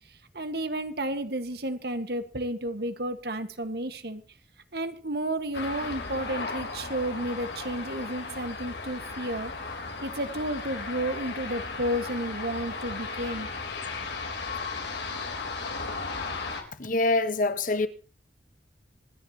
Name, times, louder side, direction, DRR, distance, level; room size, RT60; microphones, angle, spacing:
voice 1, 0.3-4.2 4.7-9.5 10.0-13.5, right 1 dB, 60° right, 1.6 m, -32 dB
sound 1, 5.5-16.6, left 4 dB, 75° left, 3.6 m, -35 dB
voice 2, 16.8-17.9, left 2 dB, 50° left, 1.2 m, -25 dB
26.0 x 10.5 x 2.9 m
head